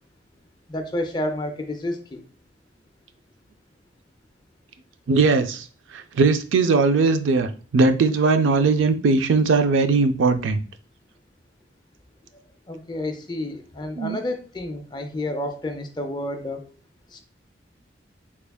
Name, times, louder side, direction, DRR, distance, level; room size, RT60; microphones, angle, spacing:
voice 1, 0.7-2.2 12.7-16.7 17.1-17.2, left 1 dB, 20° left, 5 dB, 0.4 m, -30 dB
voice 2, 5.1-5.6 6.1-10.6 14.0-14.2, right 4 dB, 80° right, 8 dB, 0.4 m, -19 dB
3.5 x 3.4 x 2.2 m, 0.39 s
head